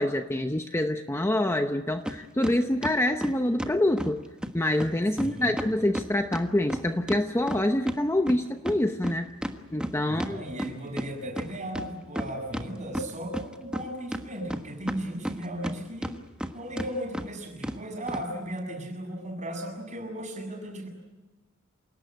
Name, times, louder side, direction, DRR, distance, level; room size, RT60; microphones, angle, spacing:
voice 1, 0.0-4.2 4.5-9.3 9.7-10.4, left 1 dB, 10° left, 6 dB, 0.8 m, -26 dB
sound 1, 2.1-2.2 2.4-4.1 4.4-4.5 4.8-4.9 5.2-5.3 5.6-8.0 8.3-11.1 11.4-11.5 11.7-12.7 12.9-13.8 14.1-15.7 16.0-16.5 16.8-16.9 17.1-17.3 17.6-17.8 18.1-18.2, equal, 5° right, 1.4 m, -32 dB
voice 2, 5.2-5.6 10.1-16.2 16.5-20.9, right 1 dB, 35° right, 3 dB, 7.5 m, -36 dB
28.0 x 18.5 x 9.2 m, 1.1 s
head